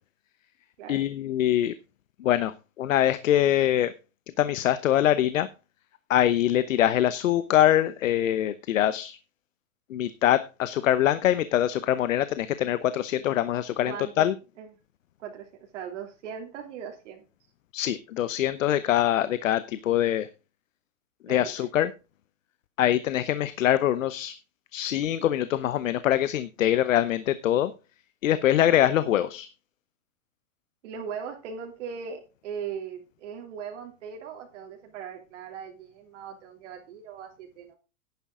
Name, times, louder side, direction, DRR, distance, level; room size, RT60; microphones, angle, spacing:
voice 1, 0.9-1.7 2.2-3.9 4.4-5.5 6.1-9.2 9.9-14.3 17.7-20.3 21.3-21.9 22.8-24.3 24.7-27.7 28.2-29.5, left 12 dB, 75° left, 14 dB, 1.0 m, -24 dB
voice 2, 13.9-14.3 14.6-14.7 15.2-15.5 15.7-17.2 21.3-21.7 30.8-37.8, right 7 dB, 65° right, 2 dB, 3.0 m, -39 dB
11.0 x 10.5 x 3.8 m, 0.30 s
hypercardioid pair, 135°, 39 cm